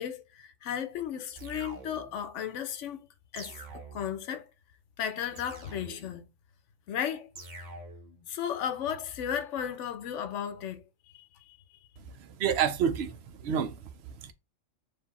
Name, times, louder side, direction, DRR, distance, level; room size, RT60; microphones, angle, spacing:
voice 1, 0.0-3.1 3.3-4.5 5.0-6.3 6.9-7.3 8.3-10.9 11.1-11.6, left 9 dB, 70° left, 0.9 m, -35 dB
sound 1, 1.4-2.3 3.4-4.3 5.4-6.3 7.4-8.2, right 3 dB, 40° right, 1.0 m, -46 dB
voice 2, 12.1-13.8 14.2-14.3, right 8 dB, 65° right, 0.8 m, -29 dB
4.7 x 2.6 x 4.0 m
omnidirectional pair, 1.3 m